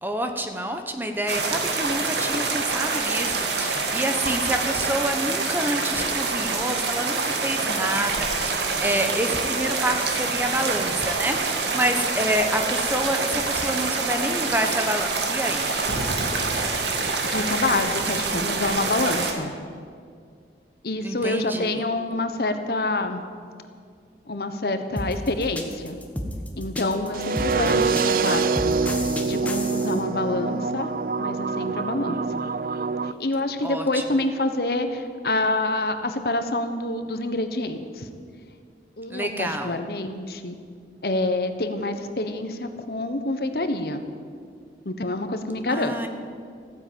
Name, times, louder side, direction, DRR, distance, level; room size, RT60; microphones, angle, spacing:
voice 1, 0.0-15.6 21.0-21.8 33.6-34.0 39.1-39.8 45.7-46.1, right 1 dB, 10° right, 5 dB, 1.0 m, -28 dB
sound 1, 1.3-19.3, right 4 dB, 80° right, 1.8 m, -26 dB
voice 2, 17.3-19.5 20.8-23.2 24.3-26.0 26.6-30.9 31.2-32.2 33.2-38.1 39.0-40.6 41.0-44.0 44.8-45.9, left 2 dB, 60° left, 8 dB, 1.1 m, -27 dB
sound 2, 25.0-30.0, left 1 dB, 10° left, 1.2 m, -32 dB
sound 3, 27.1-33.1, right 4 dB, 55° right, 0.4 m, -25 dB
15.0 x 9.7 x 8.7 m, 2.1 s
head